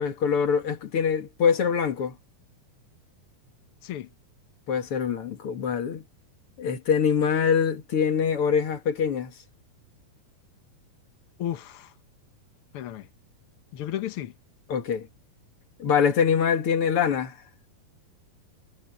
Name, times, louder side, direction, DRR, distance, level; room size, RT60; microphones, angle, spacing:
voice 1, 0.0-2.2 4.7-6.0 6.6-9.3 14.7-15.1 15.8-17.4, left 7 dB, 45° left, 2.3 m, -24 dB
voice 2, 11.4-11.9 12.7-13.1 13.7-14.3, left 12 dB, 85° left, 1.2 m, -33 dB
omnidirectional pair, 4.2 m